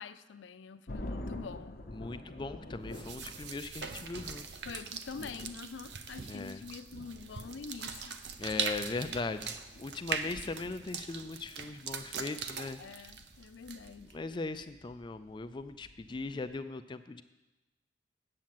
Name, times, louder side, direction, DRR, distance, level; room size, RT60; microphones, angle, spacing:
voice 1, 0.0-1.8 4.6-8.6 12.8-14.1, left 5 dB, 90° left, 13 dB, 0.5 m, -46 dB
sound 1, 0.9-16.6, left 1 dB, 55° left, 0.9 m, -48 dB
voice 2, 1.9-4.5 6.3-6.6 8.4-13.1 14.1-17.2, left 3 dB, 25° left, 10 dB, 0.3 m, -39 dB
sound 2, 2.9-14.1, right 6 dB, 65° right, 0.6 m, -41 dB
8.6 x 7.3 x 7.6 m, 1.0 s
head